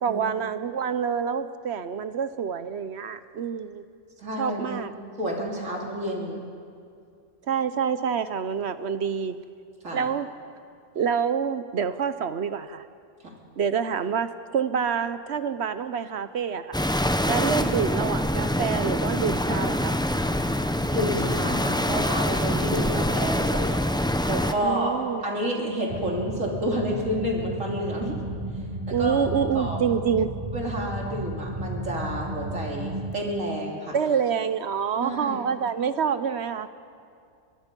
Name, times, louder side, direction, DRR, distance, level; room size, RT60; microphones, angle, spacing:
voice 1, 0.0-3.8 4.4-4.9 7.5-9.4 9.9-10.3 10.9-12.8 13.6-16.8 17.3-20.0 24.6-25.2 28.9-30.3 33.9-36.7, right 7 dB, 65° right, 12 dB, 1.0 m, -27 dB
voice 2, 4.2-4.8 5.2-6.4 9.8-10.1 13.2-13.3 20.9-23.8 24.3-25.0 25.2-28.2 28.9-29.2 29.6-29.8 30.5-34.0 35.0-35.4, equal, 90° right, -1 dB, 3.5 m, -30 dB
sound 1, 16.7-24.5, left 1 dB, 5° left, 0.6 m, -25 dB
sound 2, 25.9-33.1, right 1 dB, 25° right, 1.4 m, -33 dB
23.0 x 21.5 x 5.3 m, 2.3 s
omnidirectional pair, 1.3 m